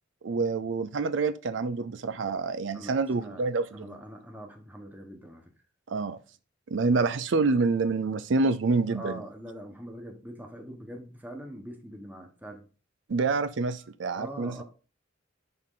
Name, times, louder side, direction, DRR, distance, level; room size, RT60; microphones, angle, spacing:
voice 1, 0.2-4.0 5.9-6.2 6.7-9.2 13.1-14.6, right 4 dB, 75° right, 0.5 m, -27 dB
voice 2, 2.7-3.5 3.7-5.5 8.9-12.6 14.1-14.6, equal, 10° right, 1.3 m, -43 dB
10.5 x 3.8 x 3.9 m
head